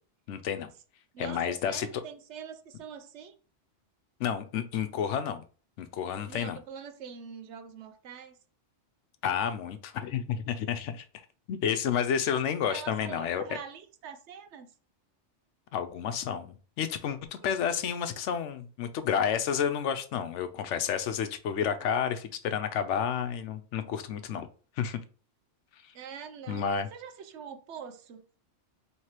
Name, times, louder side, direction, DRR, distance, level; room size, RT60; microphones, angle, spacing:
voice 1, 0.3-0.7 1.2-1.9 4.2-5.4 5.8-6.6 9.2-11.0 11.5-13.4 15.7-24.5 24.8-25.0 26.5-26.9, left 8 dB, 80° left, 0.9 m, -30 dB
voice 2, 1.1-3.4 6.3-8.4 12.6-14.7 17.7-17.8 25.9-28.2, right 7 dB, 75° right, 0.9 m, -44 dB
4.7 x 3.2 x 2.9 m
omnidirectional pair, 1.2 m